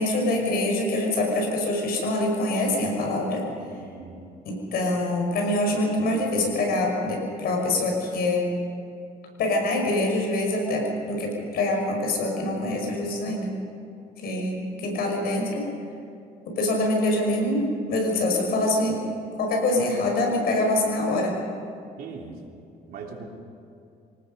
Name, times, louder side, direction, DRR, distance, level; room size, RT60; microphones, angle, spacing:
voice 1, 0.0-3.5 4.5-8.5 9.4-13.5 14.2-15.7 16.6-19.0 19.4-21.4, left 1 dB, 65° left, 1 dB, 5.6 m, -25 dB
voice 2, 3.7-4.3 22.0-22.4 22.9-23.3, right 5 dB, 65° right, 1 dB, 3.2 m, -40 dB
25.5 x 19.0 x 5.4 m, 2.5 s
cardioid pair, 110°, 17 cm